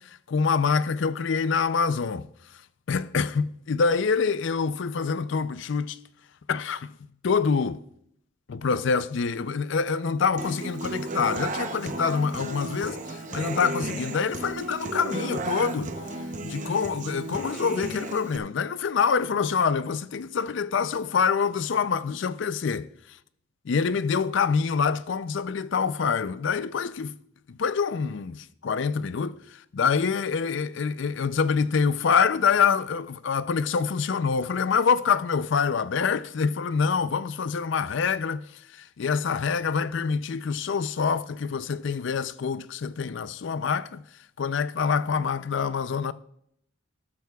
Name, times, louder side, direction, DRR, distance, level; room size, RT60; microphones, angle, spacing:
voice 1, 0.0-2.3 2.9-6.0 6.5-6.9 7.2-7.8 8.5-15.9 16.4-22.9 23.6-27.1 27.5-44.0 44.4-46.1, left 5 dB, 60° left, 0.4 m, -26 dB
Human voice / Acoustic guitar, 10.4-18.4, right 2 dB, 35° right, 0.7 m, -34 dB
13.0 x 12.5 x 2.3 m
head